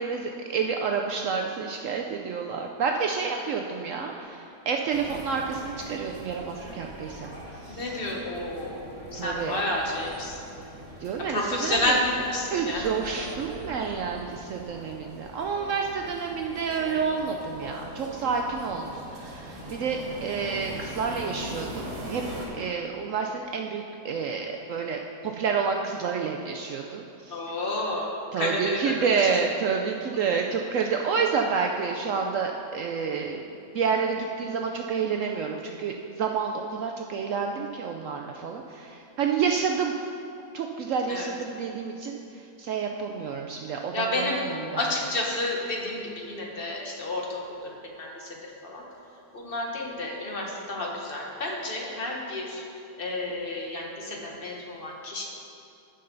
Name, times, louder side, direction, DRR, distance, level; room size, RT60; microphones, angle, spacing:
voice 1, 0.0-7.3 7.6-7.9 9.1-9.6 11.0-11.9 12.5-22.2 22.5-27.4 28.3-40.0 40.5-44.9, right 5 dB, 70° right, 2 dB, 0.7 m, -29 dB
sound 1, 4.9-22.5, right 1 dB, 50° right, 2.0 m, -41 dB
voice 2, 7.7-10.4 11.3-12.8 27.3-29.3 41.1-41.3 43.9-44.5 44.8-48.8 49.3-52.6 53.0-55.2, left 1 dB, 35° left, -1 dB, 1.3 m, -30 dB
15.0 x 5.5 x 3.9 m, 2.7 s
omnidirectional pair, 1.8 m